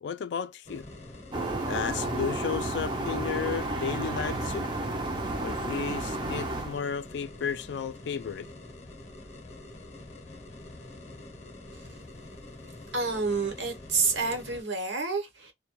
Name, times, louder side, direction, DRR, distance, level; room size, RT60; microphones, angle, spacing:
voice 1, 0.0-0.9 1.7-4.7 5.4-8.5, left 6 dB, 70° left, 0.3 m, -33 dB
sound 1, 0.6-14.6, left 2 dB, 35° left, 0.7 m, -46 dB
sound 2, 1.3-6.8, right 2 dB, 25° right, 0.4 m, -32 dB
voice 2, 12.9-15.5, right 4 dB, 80° right, 1.0 m, -29 dB
2.2 x 2.1 x 2.9 m
head